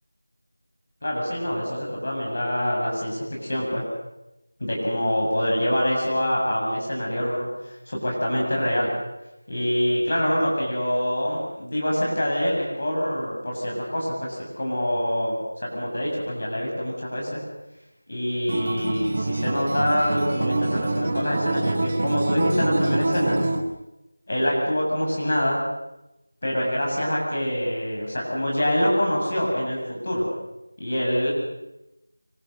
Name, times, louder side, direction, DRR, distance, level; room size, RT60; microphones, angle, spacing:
voice 1, 1.0-3.8 4.6-8.9 9.5-17.4 18.1-23.4 24.3-25.6 26.4-30.3 30.8-31.3, equal, 40° left, -2 dB, 7.6 m, -25 dB
Acoustic guitar, 18.5-23.6, right 2 dB, 20° right, 1.9 m, -25 dB
27.0 x 24.5 x 6.7 m, 0.93 s
figure-of-eight pair, 180°, 0 cm